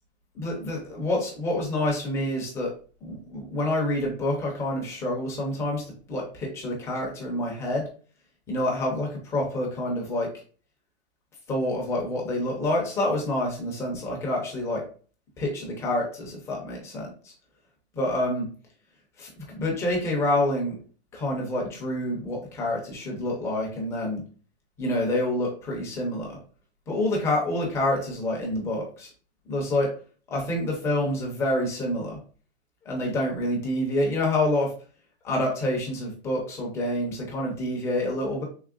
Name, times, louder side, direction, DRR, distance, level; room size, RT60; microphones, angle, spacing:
voice 1, 0.4-2.7 3.0-7.9 8.5-10.3 11.5-14.8 15.4-17.3 17.9-18.5 19.2-20.8 21.1-24.2 24.8-26.4 26.9-29.1 29.5-29.9 30.3-32.2 32.9-34.7 35.2-38.4, left 1 dB, 10° left, -2 dB, 0.4 m, -27 dB
3.6 x 2.8 x 2.4 m, 0.40 s
hypercardioid pair, 150°, 33 cm